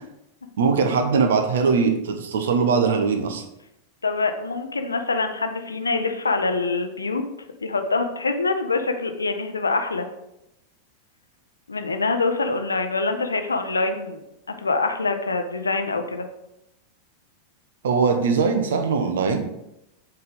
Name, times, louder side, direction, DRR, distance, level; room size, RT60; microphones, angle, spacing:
voice 1, 0.6-3.5 17.8-19.4, right 5 dB, 60° right, 7 dB, 0.8 m, -21 dB
voice 2, 4.0-7.2 7.6-10.1 11.7-14.2 14.6-16.2, left 3 dB, 75° left, 7 dB, 0.6 m, -25 dB
8.0 x 3.4 x 3.6 m, 0.85 s
figure-of-eight pair, 90°, 0 cm